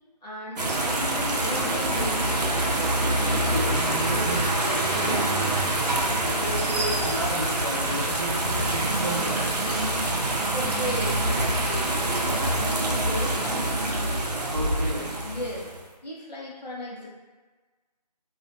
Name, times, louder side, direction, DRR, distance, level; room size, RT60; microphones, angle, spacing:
voice 1, 0.2-2.6 3.4-4.2 4.6-5.2 10.2-14.5 14.9-15.7 16.0-17.1, left 1 dB, 80° left, -4 dB, 1.0 m, -36 dB
sound 1, 0.6-15.8, right 1 dB, 75° right, 0.5 m, -25 dB
voice 2, 3.4-4.4 5.0-5.7 6.2-9.6 11.3-11.4 14.5-15.1, equal, 40° right, -7 dB, 0.8 m, -33 dB
2.5 x 2.1 x 2.7 m, 1.3 s
figure-of-eight pair, 170°, 21 cm